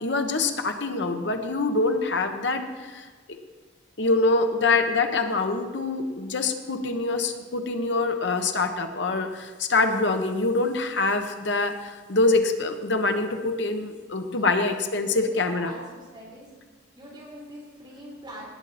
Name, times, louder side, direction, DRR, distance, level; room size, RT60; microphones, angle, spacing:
voice 1, 0.0-3.0 4.0-15.7, left 3 dB, 70° left, 6 dB, 1.1 m, -25 dB
voice 2, 15.4-16.5 16.9-18.4, equal, 25° right, -5 dB, 4.1 m, -43 dB
18.5 x 8.2 x 4.2 m, 1.4 s
head